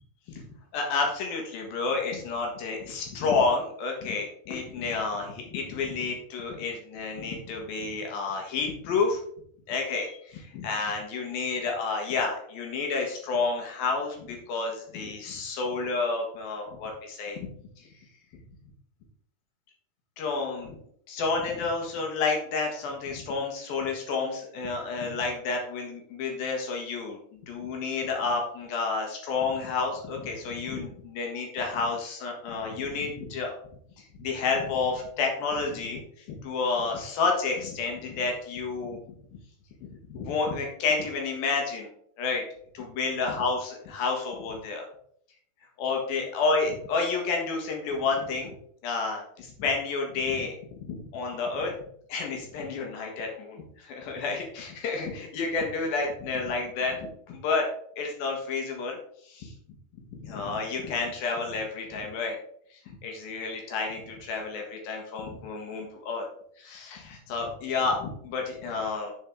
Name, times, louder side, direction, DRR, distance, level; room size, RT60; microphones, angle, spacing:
voice 1, 0.7-9.2 9.7-17.4 17.8-17.9 20.2-20.8 21.1-33.5 34.2-36.0 36.3-39.0 39.9-41.9 42.2-42.4 42.7-44.9 45.8-48.5 48.8-51.7 52.1-57.7 58.0-59.0 59.2-59.5 59.9-62.4 62.7-66.2 66.6-69.1, left 4 dB, 65° left, 1 dB, 3.0 m, -30 dB
10.5 x 4.7 x 3.7 m, 0.63 s
omnidirectional pair, 4.8 m